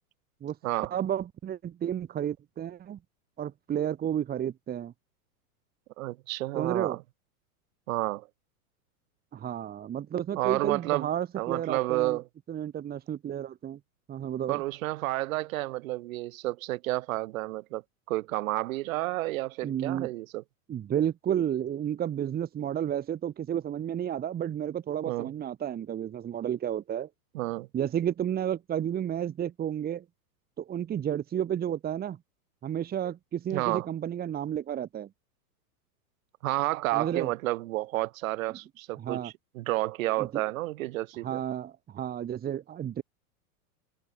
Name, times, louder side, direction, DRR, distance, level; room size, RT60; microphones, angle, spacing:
voice 1, 0.9-3.0 3.4-4.9 6.5-7.0 9.3-12.2 12.5-13.8 14.1-14.6 19.6-20.1 20.7-27.1 27.7-30.0 30.6-32.2 32.6-35.1 36.9-37.3 39.0-39.3 40.2-40.3 41.2-43.0, right 10 dB, 20° right, 1.8 m, -31 dB
voice 2, 6.0-7.0 7.9-8.3 10.4-11.1 11.4-12.2 14.5-17.8 18.1-20.4 25.0-25.3 27.3-27.7 33.5-33.9 36.4-41.4, right 18 dB, 60° right, 3.2 m, -30 dB
supercardioid pair, 135°, 45 cm